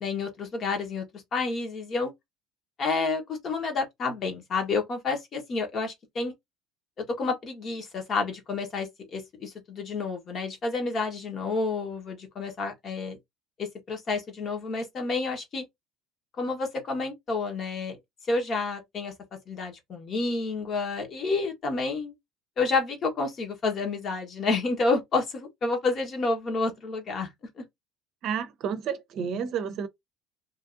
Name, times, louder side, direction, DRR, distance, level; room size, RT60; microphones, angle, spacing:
voice 1, 0.0-2.1 2.8-6.3 7.1-13.2 13.6-15.6 16.4-18.0 18.3-22.1 22.6-27.3 27.6-27.7, left 3 dB, 40° left, 1.2 m, -29 dB
voice 2, 28.2-29.9, right 7 dB, 55° right, 0.6 m, -30 dB
2.8 x 2.6 x 2.5 m
supercardioid pair, 105°, 0 cm